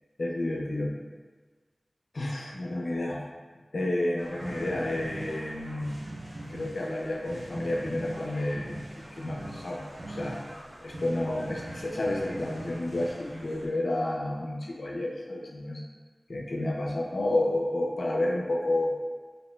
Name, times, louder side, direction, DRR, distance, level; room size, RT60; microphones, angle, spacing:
voice 1, 0.2-0.9 2.1-3.2 3.7-6.0 6.5-9.8 10.1-10.4 10.8-15.8 16.3-18.9, left 1 dB, 85° left, -2 dB, 0.4 m, -30 dB
sound 1, 4.2-13.7, right 1 dB, 85° right, 0.5 m, -42 dB
2.7 x 2.1 x 3.1 m, 1.4 s
wide cardioid pair, 70°, 0 cm